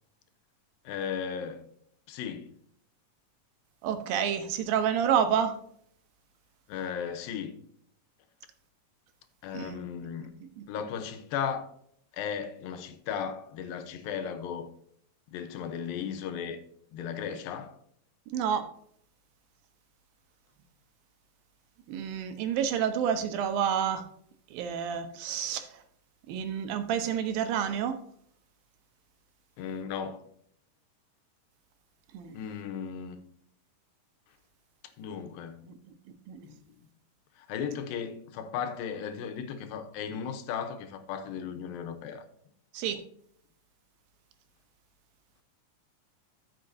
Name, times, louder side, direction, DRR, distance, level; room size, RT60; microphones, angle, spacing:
voice 1, 0.8-1.7 2.1-2.5 6.7-7.6 9.4-10.3 10.7-11.7 12.1-14.7 15.3-16.6 16.9-17.8 29.6-30.2 32.3-33.2 35.0-35.7 36.4-36.8 37.4-42.2, left 7 dB, 85° left, 2.6 m, -36 dB
voice 2, 3.8-5.6 9.5-9.8 10.2-10.3 10.6-10.7 18.3-18.6 21.9-24.1 24.5-25.8 26.3-28.0 32.1-32.4 36.3-36.5 42.7-43.0, right 8 dB, 90° right, 2.7 m, -29 dB
13.5 x 6.4 x 2.7 m
omnidirectional pair, 4.0 m